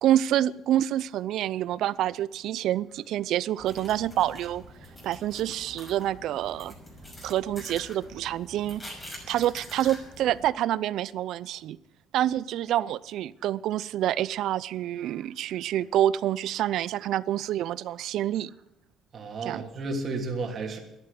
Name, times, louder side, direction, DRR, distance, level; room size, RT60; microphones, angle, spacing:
voice 1, 0.0-4.6 5.0-6.7 7.2-8.8 9.3-11.8 12.1-18.5 19.4-19.6, right 12 dB, 65° right, 19 dB, 0.5 m, -27 dB
sound 1, 3.6-10.5, equal, 15° left, 5.8 m, -45 dB
voice 2, 19.1-20.8, right 3 dB, 40° right, 2 dB, 2.8 m, -33 dB
12.5 x 11.0 x 8.3 m, 0.89 s
cardioid pair, 135°, 0 cm